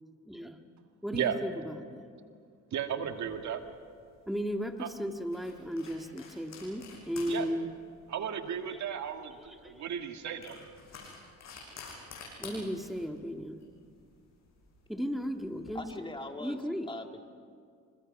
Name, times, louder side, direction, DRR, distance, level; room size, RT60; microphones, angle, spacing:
voice 1, 0.3-0.6 1.0-2.1 4.3-7.7 8.7-8.8 9.4-9.8 11.7-12.0 12.4-13.7 14.9-15.9 16.4-16.9, equal, ahead, 4 dB, 1.9 m, -36 dB
voice 2, 2.7-3.6 4.8-4.9 7.3-7.5 8.1-10.6, right 8 dB, 70° right, 6 dB, 1.9 m, -34 dB
sound 1, 3.1-15.7, left 4 dB, 60° left, 7.9 m, -51 dB
voice 3, 15.7-16.6 16.9-17.2, left 2 dB, 15° left, 4 dB, 2.0 m, -41 dB
27.5 x 26.0 x 5.4 m, 2.2 s
cardioid pair, 90°, 30 cm